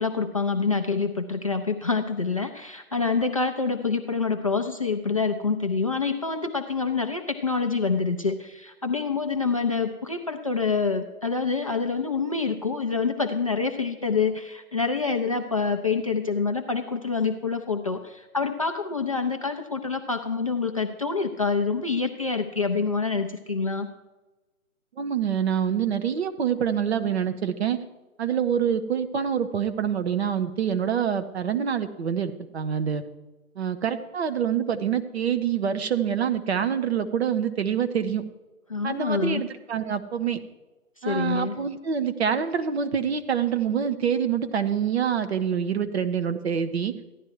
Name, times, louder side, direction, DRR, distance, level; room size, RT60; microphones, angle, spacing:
voice 1, 0.0-23.9 38.7-39.4 41.0-41.5, left 4 dB, 25° left, 3 dB, 0.5 m, -26 dB
voice 2, 25.0-27.8 28.2-33.0 33.6-38.2 38.8-40.4 41.0-46.9, right 8 dB, 50° right, 9 dB, 1.0 m, -26 dB
14.5 x 11.0 x 4.7 m, 1.1 s
figure-of-eight pair, 145°, 42 cm